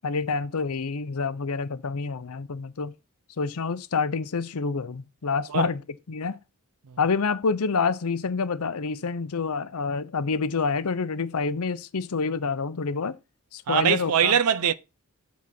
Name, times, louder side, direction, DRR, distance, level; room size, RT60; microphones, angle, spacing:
voice 1, 0.0-2.9 3.4-5.8 6.1-6.4 7.0-13.2 13.5-14.3, left 4 dB, 70° left, 0.6 m, -27 dB
voice 2, 13.7-14.7, right 8 dB, 75° right, 0.5 m, -22 dB
7.4 x 4.0 x 5.9 m
head